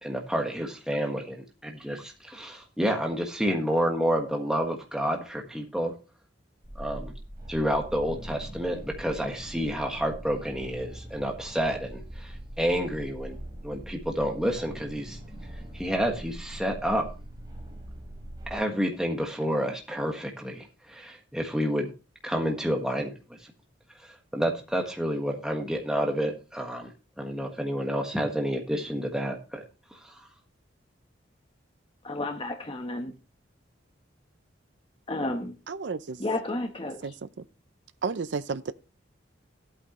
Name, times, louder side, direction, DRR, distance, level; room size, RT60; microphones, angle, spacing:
voice 1, 0.0-5.9 6.7-7.1 7.5-13.4 13.6-15.2 15.7-17.0 18.5-21.9 22.2-23.1 24.0-26.9 27.2-29.6 29.9-30.1, equal, 5° right, 1.5 m, -29 dB
sound 1, 6.6-18.5, right 1 dB, 20° right, 4.4 m, -42 dB
voice 2, 32.0-33.1 35.1-35.5 36.2-37.1, left 2 dB, 30° left, 1.1 m, -32 dB
voice 3, 35.7-36.2 37.0-37.1 38.0-38.7, right 4 dB, 70° right, 0.5 m, -31 dB
13.5 x 8.8 x 3.1 m
head